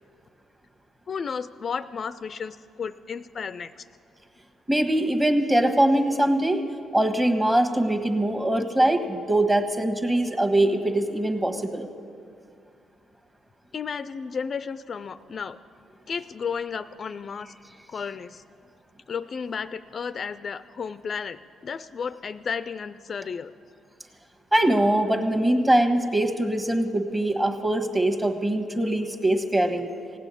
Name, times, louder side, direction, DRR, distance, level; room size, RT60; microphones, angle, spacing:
voice 1, 1.1-3.9 13.7-15.6 16.1-17.5 17.9-18.4 19.1-23.5, left 6 dB, 45° left, 13 dB, 0.4 m, -33 dB
voice 2, 4.7-6.6 6.9-11.9 24.5-29.9, right 1 dB, 20° right, 5 dB, 1.4 m, -22 dB
16.5 x 9.1 x 8.3 m, 2.4 s
cardioid pair, 90°, 0 cm